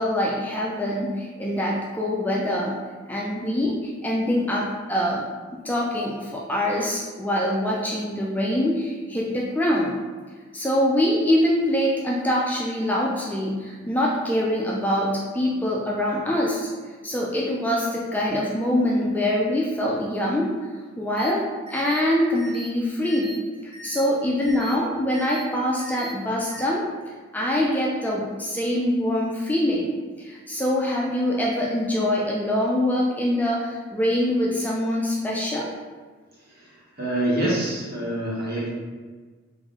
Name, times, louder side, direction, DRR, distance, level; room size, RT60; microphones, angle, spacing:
voice 1, 0.0-2.8 3.1-5.2 5.6-10.0 10.5-16.7 17.0-20.5 21.0-21.4 21.7-23.4 23.6-26.8 27.3-35.7, left 1 dB, 10° left, -4 dB, 0.3 m, -24 dB
sound 1, 21.2-21.3 21.7-22.0 22.3-22.7 23.0-23.4 23.7-24.0 24.4-24.7 25.1-25.4 25.8-26.1 26.5-26.6, right 1 dB, 25° right, 1.2 m, -40 dB
voice 2, 37.0-38.7, right 1 dB, 50° right, -6 dB, 1.2 m, -25 dB
3.4 x 2.6 x 3.6 m, 1.4 s
head